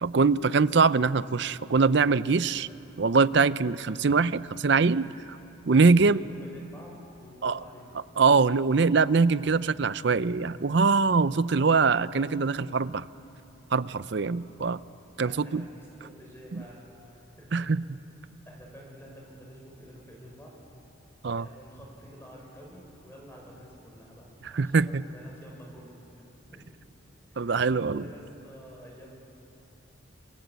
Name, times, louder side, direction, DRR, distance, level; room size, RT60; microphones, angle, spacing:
voice 1, 0.0-2.7 3.0-5.1 5.7-6.2 7.4-7.6 8.2-13.1 13.7-14.8 15.2-15.6 16.5-16.6 17.5-17.8 21.2-21.5 24.5-25.0 27.4-28.1, right 4 dB, 55° right, 16 dB, 0.5 m, -23 dB
voice 2, 5.7-7.9 15.2-17.7 18.4-20.6 21.3-26.6 27.3-29.2, equal, 10° left, -1 dB, 5.9 m, -49 dB
29.0 x 24.0 x 8.2 m, 2.9 s
head